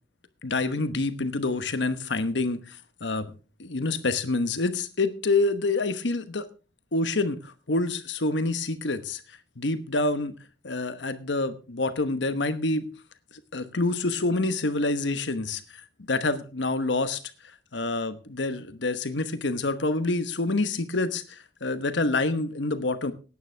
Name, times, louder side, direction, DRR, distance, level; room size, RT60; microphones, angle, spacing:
voice 1, 0.4-3.3 3.6-6.5 6.9-9.2 9.6-10.3 10.6-12.9 13.5-15.6 16.1-17.2 17.7-23.1, left 2 dB, 80° left, 11 dB, 1.1 m, -27 dB
18.0 x 9.6 x 3.4 m, 0.34 s
head